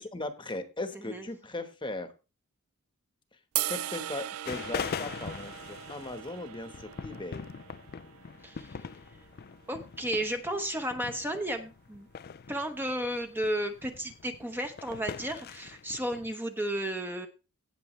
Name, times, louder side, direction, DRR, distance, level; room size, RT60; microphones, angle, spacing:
voice 1, 0.0-2.1 3.6-7.5, left 2 dB, 20° left, 8 dB, 1.2 m, -38 dB
sound 1, 3.6-9.8, right 14 dB, 75° right, 0.4 m, -39 dB
sound 2, 4.4-16.3, left 6 dB, 45° left, 0.4 m, -42 dB
voice 2, 8.4-8.8 9.7-12.1 12.5-17.3, right 1 dB, 10° right, 6 dB, 0.9 m, -33 dB
17.0 x 6.9 x 3.2 m, 0.31 s
head